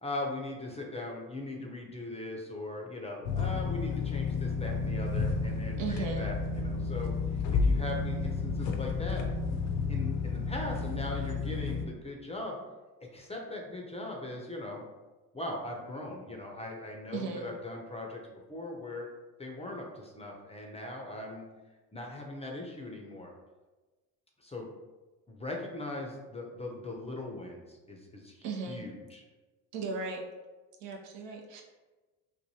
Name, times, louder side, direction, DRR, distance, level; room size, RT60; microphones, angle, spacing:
voice 1, 0.0-9.2 9.9-12.6 13.1-14.8 15.3-18.2 18.5-19.1 19.4-21.5 21.9-23.3 24.4-24.7 25.3-29.2, left 2 dB, 15° left, 0 dB, 0.5 m, -40 dB
sound 1, 3.2-11.9, left 4 dB, 60° left, 0.6 m, -31 dB
voice 2, 5.8-6.3 17.1-17.5 28.4-28.8 29.7-30.2 30.8-31.6, right 4 dB, 65° right, 1 dB, 0.7 m, -36 dB
3.1 x 2.2 x 2.7 m, 1.2 s
hypercardioid pair, 65°, 48 cm